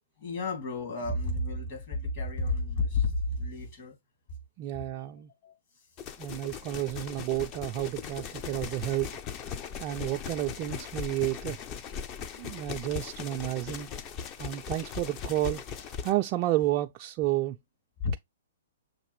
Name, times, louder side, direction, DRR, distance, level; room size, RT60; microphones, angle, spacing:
voice 1, 0.2-3.9 5.4-5.5 18.0-18.1, left 3 dB, 50° left, 2.5 m, -31 dB
voice 2, 4.6-5.3 6.2-9.1 9.8-11.6 12.4-13.9 14.4-17.6, right 15 dB, 35° right, 0.3 m, -31 dB
sound 1, 6.0-16.1, left 7 dB, 30° left, 0.5 m, -39 dB
6.5 x 2.5 x 3.0 m
hypercardioid pair, 130°, 0 cm